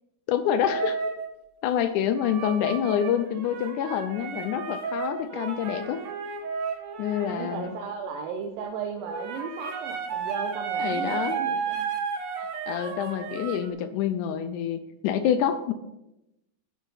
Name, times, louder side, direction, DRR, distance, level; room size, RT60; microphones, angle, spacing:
voice 1, 0.3-1.0 1.6-6.0 7.0-7.7 10.8-11.4 12.4-15.7, left 9 dB, 80° left, 10 dB, 1.8 m, -27 dB
sound 1, 0.6-1.3 2.2-7.9 9.0-13.7, right 6 dB, 65° right, 1.4 m, -33 dB
voice 2, 7.2-11.9, right 5 dB, 80° right, 4 dB, 2.6 m, -35 dB
11.5 x 9.1 x 4.0 m, 0.91 s
omnidirectional pair, 4.2 m